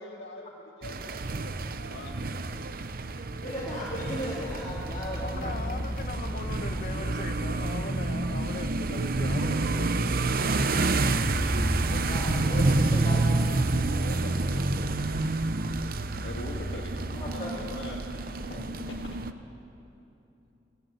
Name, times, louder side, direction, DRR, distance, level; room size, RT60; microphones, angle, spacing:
voice 1, 0.0-2.1 11.9-13.4 13.7-14.8 16.2-18.0 18.3-19.1, left 2 dB, 70° left, -2 dB, 1.9 m, -43 dB
sound 1, 0.8-19.3, right 2 dB, 50° right, 0.8 m, -29 dB
voice 2, 3.4-5.5 11.0-11.3 12.0-13.2 16.5-16.6 17.0-17.5 18.5-18.6, equal, 25° left, -7 dB, 4.1 m, -37 dB
sound 2, 4.4-16.9, equal, 15° right, 1.5 m, -37 dB
voice 3, 5.2-10.1, left 2 dB, 45° left, 6 dB, 1.5 m, -39 dB
30.0 x 19.0 x 8.1 m, 2.9 s
head